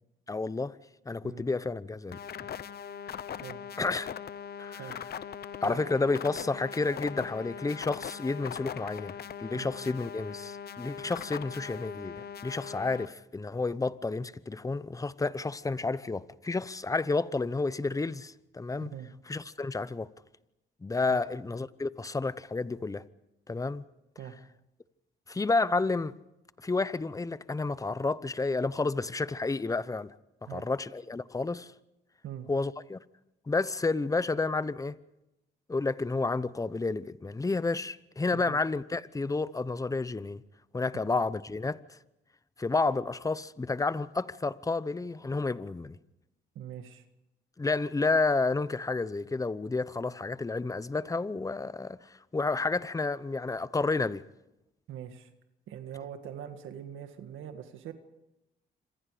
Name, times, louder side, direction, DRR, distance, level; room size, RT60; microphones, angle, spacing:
voice 1, 0.3-0.8 1.1-2.2 3.8-4.1 4.6-4.9 5.6-18.9 19.3-20.1 20.8-23.1 23.5-23.9 25.3-26.2 26.6-30.1 30.4-31.7 32.5-33.0 33.5-35.0 35.7-40.4 40.7-42.0 42.6-46.0 47.6-54.2, left 3 dB, 15° left, 0.8 m, -30 dB
sound 1, 2.1-13.1, left 8 dB, 50° left, 0.9 m, -41 dB
voice 2, 46.6-47.0 54.9-55.3 55.7-57.9, right 10 dB, 80° right, 1.9 m, -42 dB
27.0 x 25.5 x 5.1 m
cardioid pair, 90°, 20 cm